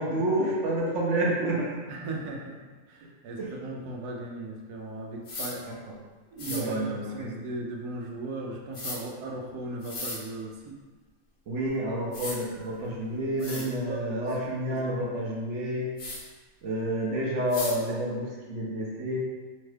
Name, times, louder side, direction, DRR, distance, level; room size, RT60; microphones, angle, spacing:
voice 1, 0.0-1.8 3.4-3.5 6.5-7.3 11.5-15.9 16.6-19.2, right 1 dB, 65° right, -4 dB, 0.8 m, -29 dB
voice 2, 1.9-2.6 2.9-5.6 6.3-10.8 12.4-12.8 13.4-14.3 14.6-15.5, right 2 dB, 85° right, 0 dB, 1.1 m, -38 dB
sound 1, 5.2-5.5 6.4-6.6 8.7-9.0 9.8-10.2 11.7-11.8 12.1-12.4 13.0-13.1 13.4-13.7 16.0-16.2 17.5-17.8, left 2 dB, 55° left, 0.7 m, -35 dB
3.0 x 2.3 x 3.2 m, 1.4 s
omnidirectional pair, 1.6 m